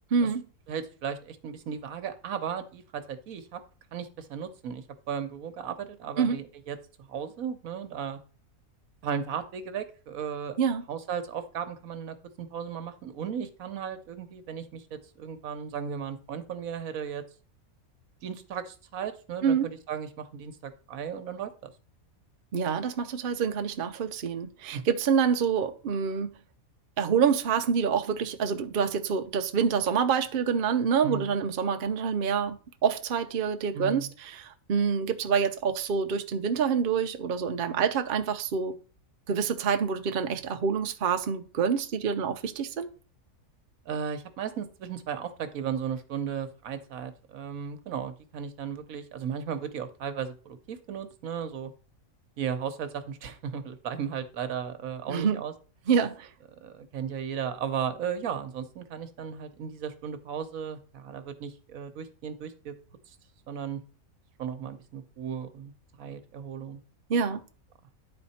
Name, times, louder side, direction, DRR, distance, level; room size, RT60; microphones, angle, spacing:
voice 1, 0.1-0.4 6.2-6.4 10.6-10.9 19.4-19.7 22.5-26.3 27.0-38.8 39.3-42.9 55.1-55.4 55.9-56.3 67.1-67.5, right 6 dB, 50° right, 0.7 m, -27 dB
voice 2, 0.7-3.6 3.9-8.2 9.0-10.6 10.9-17.2 18.2-21.7 24.7-24.8 31.0-31.3 33.7-34.1 43.9-51.7 52.4-55.5 56.6-62.7 63.5-63.8 64.4-65.7 66.0-66.8, right 7 dB, 75° right, 1.3 m, -35 dB
10.5 x 4.3 x 4.2 m
omnidirectional pair, 1.5 m